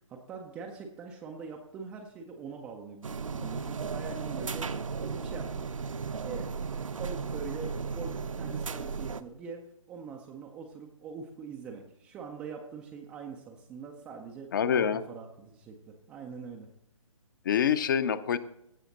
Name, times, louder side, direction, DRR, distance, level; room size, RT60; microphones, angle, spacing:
voice 1, 0.1-4.7 5.0-5.6 6.2-6.5 7.0-16.7, right 5 dB, 5° right, 0 dB, 0.3 m, -43 dB
sound 1, 3.0-9.2, right 5 dB, 70° right, 0.7 m, -35 dB
voice 2, 14.5-15.0 17.4-18.4, left 8 dB, 40° left, 14 dB, 0.6 m, -26 dB
16.5 x 5.6 x 3.9 m, 0.81 s
figure-of-eight pair, 140°, 17 cm